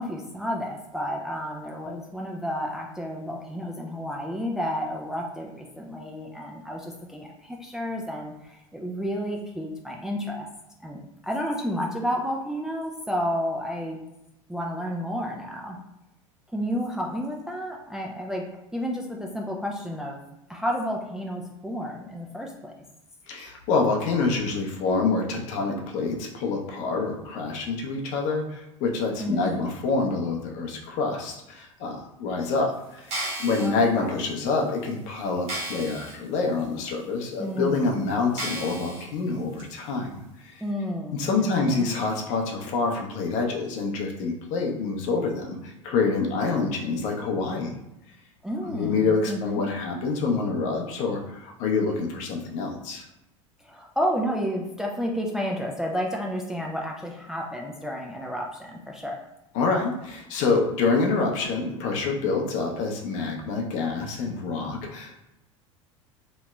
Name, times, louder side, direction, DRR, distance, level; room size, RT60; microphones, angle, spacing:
voice 1, 0.0-10.5 10.8-14.0 14.5-15.8 16.5-18.5 18.7-20.2 20.5-22.7 29.2-29.7 33.6-34.1 37.4-38.0 40.6-42.0 48.4-49.7 53.6-59.2, equal, 5° right, -1 dB, 0.3 m, -31 dB
voice 2, 23.3-32.7 33.4-40.6 41.1-47.7 48.6-53.0 59.5-65.2, left 4 dB, 45° left, 1 dB, 0.7 m, -27 dB
sound 1, 33.0-33.7 34.4-34.5 34.9-35.0 35.5-36.2 36.6-36.7 37.4-37.5 38.4-39.0 39.6-39.7, right 1 dB, 40° right, 1.2 m, -33 dB
3.0 x 2.8 x 2.3 m, 0.90 s
figure-of-eight pair, 75°, 17 cm